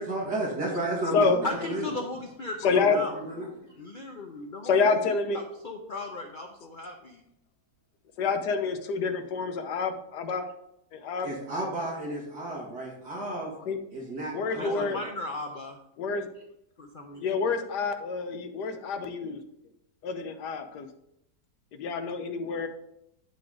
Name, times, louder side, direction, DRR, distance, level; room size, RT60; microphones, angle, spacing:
voice 1, 0.0-1.9 2.7-3.5 11.2-13.5 13.9-15.0, right 1 dB, 80° right, -3 dB, 2.4 m, -33 dB
voice 2, 1.4-3.2 3.8-4.9 5.3-7.2 14.6-15.8 16.8-17.3, left 2 dB, 45° left, 2 dB, 0.7 m, -37 dB
voice 3, 2.6-3.0 4.6-5.4 8.2-10.5 10.9-11.3 13.7-13.8 14.3-15.0 16.0-16.3 17.2-19.4 20.0-20.9 21.8-22.7, left 4 dB, 85° left, 8 dB, 1.4 m, -27 dB
10.0 x 3.9 x 4.9 m, 0.81 s
omnidirectional pair, 1.7 m